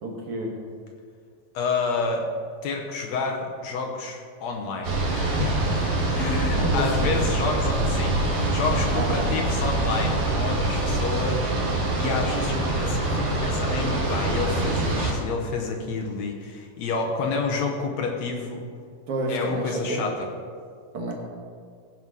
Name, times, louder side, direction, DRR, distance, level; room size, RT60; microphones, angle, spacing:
voice 1, 0.0-0.6 6.6-7.1 8.9-9.3 19.1-20.1 20.9-21.1, right 2 dB, 55° right, -1 dB, 2.0 m, -29 dB
voice 2, 1.5-2.3 2.6-5.6 6.1-18.7 19.3-20.3, left 4 dB, 70° left, 1 dB, 2.0 m, -29 dB
sound 1, 4.8-15.1, right 2 dB, 80° right, 3.5 m, -24 dB
15.5 x 5.4 x 6.2 m, 2.1 s
omnidirectional pair, 3.5 m